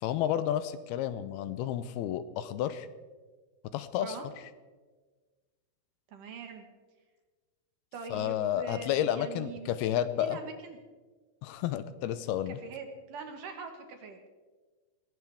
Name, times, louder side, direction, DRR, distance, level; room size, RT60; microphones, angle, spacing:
voice 1, 0.0-2.9 3.7-4.2 8.1-10.4 11.4-12.6, left 11 dB, 80° left, 12 dB, 2.5 m, -31 dB
voice 2, 6.1-6.7 7.9-9.7 10.2-10.8 12.6-14.3, right 4 dB, 65° right, 5 dB, 2.6 m, -43 dB
21.0 x 16.5 x 3.5 m, 1.3 s
omnidirectional pair, 4.6 m